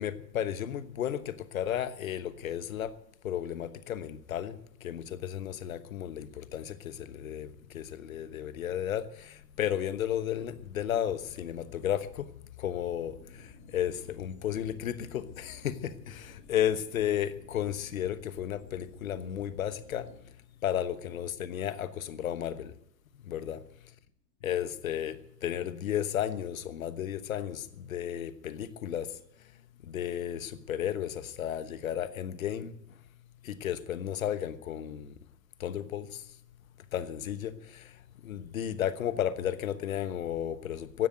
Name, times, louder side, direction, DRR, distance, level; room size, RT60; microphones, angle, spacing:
voice 1, 0.0-2.9 3.2-4.5 4.8-7.5 7.7-9.0 9.6-12.3 12.6-13.1 13.7-20.1 20.6-22.7 23.3-23.6 24.4-25.2 25.4-29.1 29.9-32.7 33.4-35.1 35.6-36.0 36.9-37.5 38.2-41.1, left 10 dB, 55° left, 1.2 m, -33 dB
sound 1, 13.0-23.9 24.2-24.3, left 2 dB, 30° left, 3.9 m, -55 dB
15.5 x 10.5 x 7.9 m
figure-of-eight pair, 110°, 50 cm